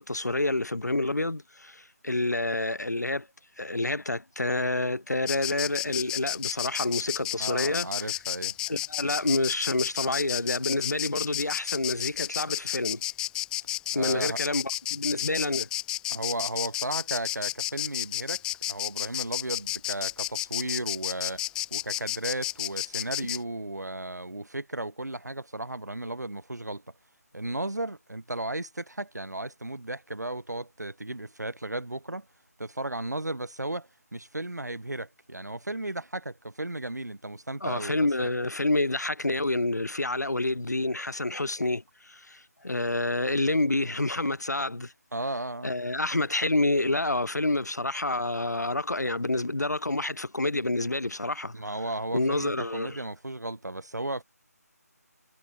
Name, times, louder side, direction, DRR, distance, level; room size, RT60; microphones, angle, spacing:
voice 1, 0.0-3.3 3.6-8.1 8.7-13.0 13.9-15.7 37.6-44.9 45.6-51.5 52.1-53.0, left 2 dB, 80° left, 1.9 m, -28 dB
Insect, 5.3-23.4, left 14 dB, 10° left, 1.2 m, -32 dB
voice 2, 7.4-8.6 13.9-14.4 16.1-18.4 18.7-21.4 21.7-26.8 27.3-32.3 32.6-38.3 45.1-45.7 51.5-54.2, right 2 dB, 80° right, 6.0 m, -35 dB
figure-of-eight pair, 155°, 9 cm